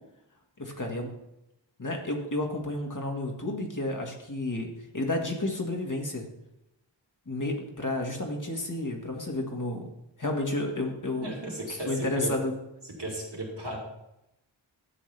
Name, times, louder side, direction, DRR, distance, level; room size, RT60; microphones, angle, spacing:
voice 1, 0.6-1.1 1.8-4.7 4.9-6.3 7.3-9.8 10.2-11.3 11.7-12.5, left 1 dB, 40° left, 1 dB, 1.7 m, -31 dB
voice 2, 11.2-12.3 12.9-13.8, right 1 dB, 60° right, -2 dB, 3.2 m, -35 dB
12.5 x 7.6 x 3.3 m, 0.87 s
wide cardioid pair, 65°, 46 cm